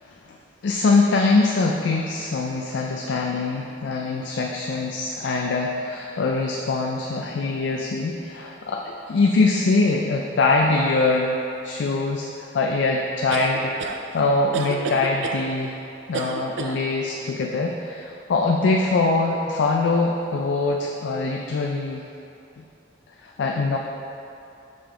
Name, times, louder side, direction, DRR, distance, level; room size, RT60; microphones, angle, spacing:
voice 1, 0.6-12.3 12.5-13.7 14.1-15.8 16.1-22.0 22.6-22.7 23.2-23.8, left 3 dB, 75° left, 0 dB, 0.4 m, -23 dB
sound 1, 13.3-14.0 14.5-15.4 16.1-16.8, right 4 dB, 75° right, 0.4 m, -30 dB
5.5 x 5.2 x 3.4 m, 2.7 s
head